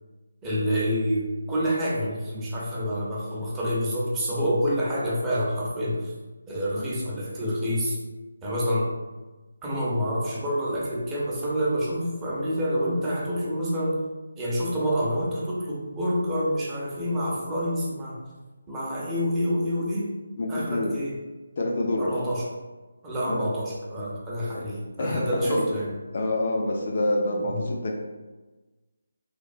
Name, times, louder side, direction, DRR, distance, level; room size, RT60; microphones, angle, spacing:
voice 1, 0.4-6.1 6.5-8.0 8.4-8.9 9.6-14.0 14.4-18.2 18.7-20.1 20.5-21.2 22.0-22.5 23.0-25.9 27.5-27.7, equal, 15° right, -6 dB, 0.5 m, -27 dB
voice 2, 20.4-20.9 21.6-22.1 23.3-23.5 24.5-24.6 25.0-25.7 26.1-27.9, left 1 dB, 45° left, 0 dB, 0.4 m, -27 dB
3.1 x 2.1 x 2.5 m, 1.2 s
figure-of-eight pair, 155°, 0 cm